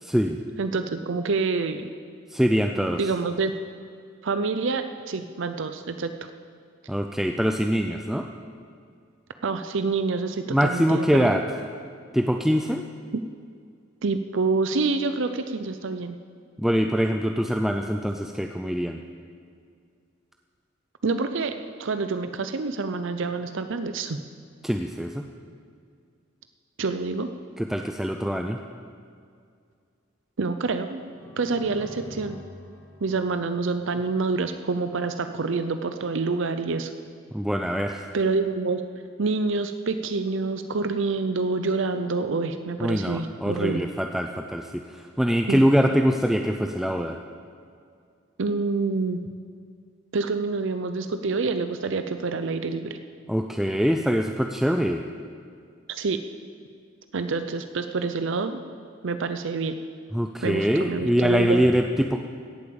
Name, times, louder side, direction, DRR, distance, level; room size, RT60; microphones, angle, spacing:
voice 1, 0.0-0.4 2.3-3.0 6.9-8.3 10.5-11.4 12.1-12.8 16.6-19.0 24.6-25.2 27.6-28.6 37.3-38.0 42.8-47.2 53.3-55.0 60.1-62.2, equal, ahead, 4 dB, 0.5 m, -23 dB
voice 2, 0.6-1.9 3.0-3.5 4.2-6.3 9.4-11.3 14.0-16.2 21.0-24.2 26.8-27.3 30.4-31.0 31.4-32.4 33.0-36.9 38.1-38.8 39.2-43.8 45.5-45.6 48.4-49.2 50.1-53.0 55.9-56.2 57.1-58.6 59.0-59.8 60.4-61.6, right 4 dB, 70° right, 9 dB, 0.6 m, -27 dB
sound 1, 31.0-34.8, left 1 dB, 15° left, 1.4 m, -45 dB
17.0 x 8.5 x 7.0 m, 2.2 s
head